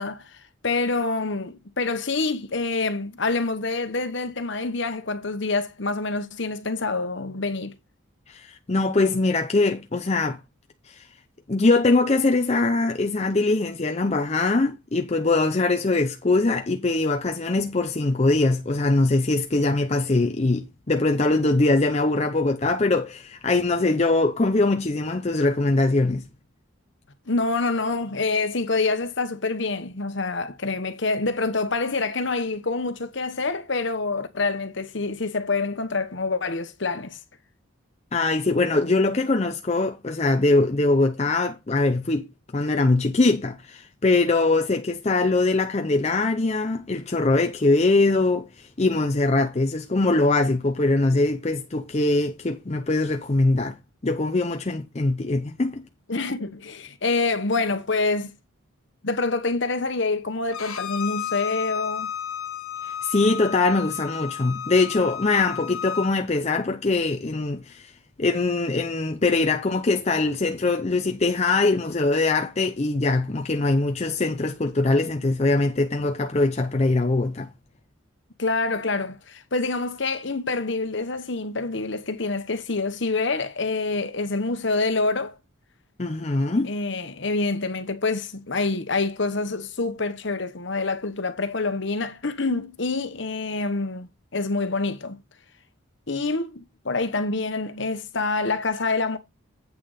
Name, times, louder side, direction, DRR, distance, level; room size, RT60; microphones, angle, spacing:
voice 1, 0.0-7.7 27.3-37.2 56.1-58.3 59.0-62.1 78.4-85.3 86.6-95.2 96.1-99.2, left 3 dB, 55° left, 1.1 m, -26 dB
voice 2, 8.3-10.4 10.9-11.1 11.5-26.3 38.1-42.3 42.5-55.8 63.0-67.9 68.2-77.5 86.0-86.7, left 2 dB, 30° left, 0.6 m, -22 dB
Bowed string instrument, 60.5-66.1, left 9 dB, 85° left, 1.2 m, -33 dB
8.6 x 6.3 x 4.1 m
head